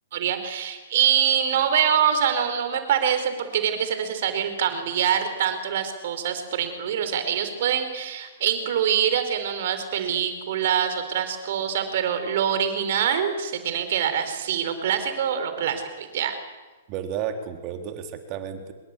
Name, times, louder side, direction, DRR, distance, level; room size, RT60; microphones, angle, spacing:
voice 1, 0.1-16.4, right 8 dB, 55° right, 8 dB, 4.6 m, -24 dB
voice 2, 16.9-18.7, right 8 dB, 35° right, 6 dB, 3.7 m, -32 dB
25.0 x 22.0 x 8.5 m, 1.3 s
hypercardioid pair, 120°, 0 cm